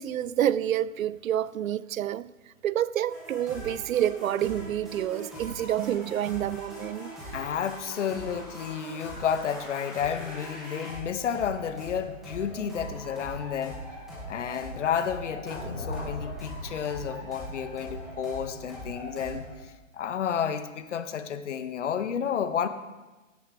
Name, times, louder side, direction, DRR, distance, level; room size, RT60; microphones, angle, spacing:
voice 1, 0.0-2.3 2.6-7.1, right 11 dB, 80° right, 0.5 m, -28 dB
sound 1, 3.1-19.6, equal, ahead, 0.4 m, -41 dB
voice 2, 7.3-13.8 14.3-22.7, left 8 dB, 60° left, 0.9 m, -31 dB
sound 2, 15.5-19.7, left 1 dB, 80° left, 4.5 m, -40 dB
16.0 x 9.4 x 3.4 m
hypercardioid pair, 150°, 40 cm